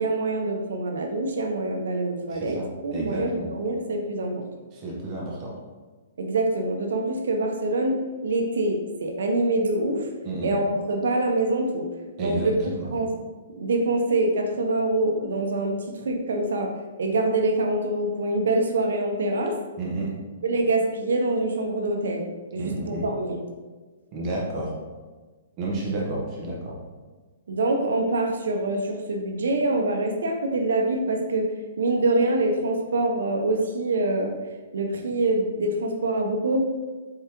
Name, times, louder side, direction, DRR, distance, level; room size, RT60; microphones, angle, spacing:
voice 1, 0.0-4.4 6.2-8.0 8.2-10.1 10.4-11.9 12.2-12.6 12.9-13.1 13.5-16.7 17.0-19.5 20.4-22.3 22.5-23.4 27.5-31.5 31.8-34.3 34.7-36.6, right 2 dB, 85° right, 3 dB, 0.8 m, -25 dB
voice 2, 2.3-3.5 4.7-5.5 10.2-10.5 12.2-12.5 12.7-12.9 19.8-20.1 22.5-23.1 24.1-24.7 25.6-26.8, right 2 dB, 25° right, -4 dB, 0.9 m, -31 dB
4.6 x 3.5 x 2.9 m, 1.3 s
hypercardioid pair, 165°, 0 cm